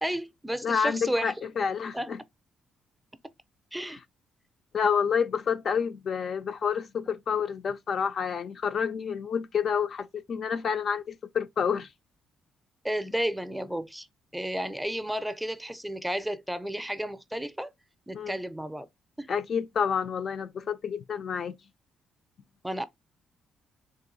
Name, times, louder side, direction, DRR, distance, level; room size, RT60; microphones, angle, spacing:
voice 1, 0.0-1.3 1.9-2.1 3.7-4.0 12.8-14.1 14.3-17.7 18.1-18.9 19.2-19.3 22.6-22.9, right 1 dB, 5° right, 0.5 m, -32 dB
voice 2, 0.6-2.2 3.8-4.0 4.7-11.9 18.1-18.4 19.3-21.6, left 6 dB, 55° left, 0.4 m, -29 dB
3.8 x 2.6 x 3.9 m
cardioid pair, 90°, 0 cm